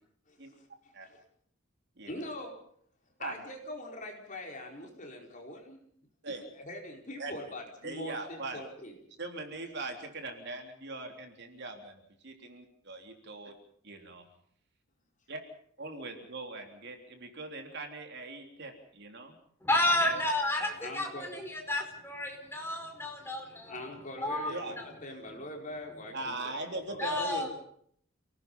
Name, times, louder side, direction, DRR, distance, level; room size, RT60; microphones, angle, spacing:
voice 1, 0.3-0.6 1.0-1.2 2.1-2.5 3.2-5.8 6.5-9.0 20.8-21.3 23.7-27.2, left 1 dB, 35° left, 1 dB, 4.8 m, -43 dB
voice 2, 2.0-2.3 3.2-3.3 6.2-6.5 7.2-7.3 7.8-8.6 9.2-13.5 13.8-14.3 15.3-15.4 15.8-19.3 19.8-20.2 20.6-20.8 24.5-24.8 26.1-27.6, right 2 dB, 50° right, 4 dB, 3.6 m, -40 dB
voice 3, 19.6-23.9 24.2-24.5 24.8-24.9 27.0-27.6, left 1 dB, 10° left, 2 dB, 4.9 m, -31 dB
29.0 x 18.5 x 5.5 m, 0.64 s
head